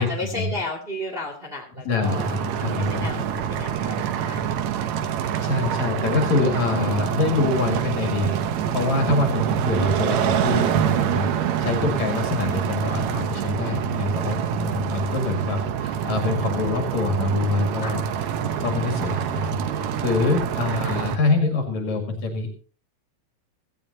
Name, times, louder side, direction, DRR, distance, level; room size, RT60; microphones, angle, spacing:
voice 1, 0.0-2.4 2.8-4.0 4.2-4.7 5.1-5.4 17.8-18.0 20.0-20.1 20.8-20.9, left 1 dB, 20° right, 2 dB, 2.1 m, -34 dB
voice 2, 1.8-3.2 5.4-8.4 8.7-11.3 11.6-18.0 18.6-22.6, left 3 dB, 60° left, 3 dB, 3.2 m, -25 dB
sound 1, 2.0-21.2, right 8 dB, 70° right, 2.1 m, -26 dB
16.5 x 16.0 x 2.8 m, 0.39 s
omnidirectional pair, 3.7 m